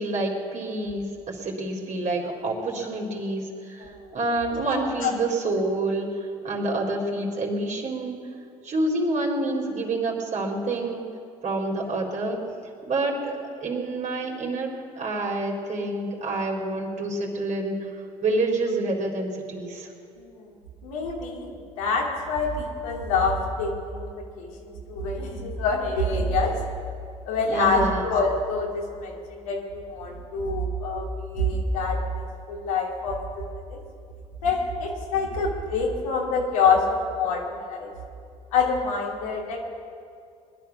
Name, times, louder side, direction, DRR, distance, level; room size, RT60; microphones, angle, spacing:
voice 1, 0.0-3.8 4.1-8.2 8.6-11.1 11.4-12.4 12.8-17.8 18.2-19.9 27.5-28.0, right 2 dB, 45° right, 0 dB, 3.9 m, -28 dB
voice 2, 4.6-5.1 20.2-20.5 20.8-26.5 27.2-32.0 32.5-33.8 34.4-37.9 38.5-39.6, left 3 dB, 80° left, -2 dB, 2.7 m, -26 dB
21.0 x 11.5 x 5.9 m, 2.3 s
hypercardioid pair, 60°, 18 cm